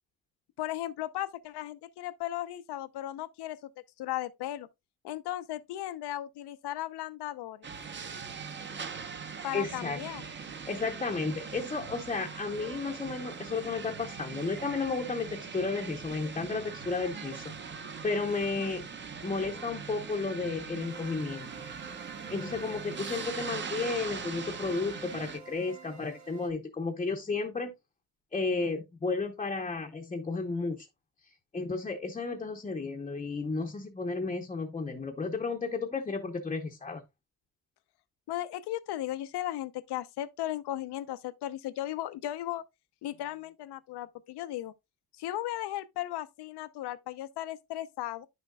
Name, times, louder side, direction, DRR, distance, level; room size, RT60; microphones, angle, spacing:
voice 1, 0.6-3.6 4.0-4.7 5.0-7.7 9.4-10.2 38.3-42.6 43.0-44.7 45.2-48.3, left 14 dB, 75° left, 0.8 m, -36 dB
sound 1, 7.6-25.4, right 6 dB, 30° right, 0.8 m, -41 dB
voice 2, 9.5-10.0 10.7-17.5 18.0-18.9 19.2-21.5 21.9-27.7 28.3-30.9 31.5-37.0, left 4 dB, 15° left, 0.8 m, -33 dB
sound 2, 20.8-26.5, right 5 dB, 45° right, 1.4 m, -49 dB
10.0 x 6.5 x 2.3 m
cardioid pair, 170°, 40 cm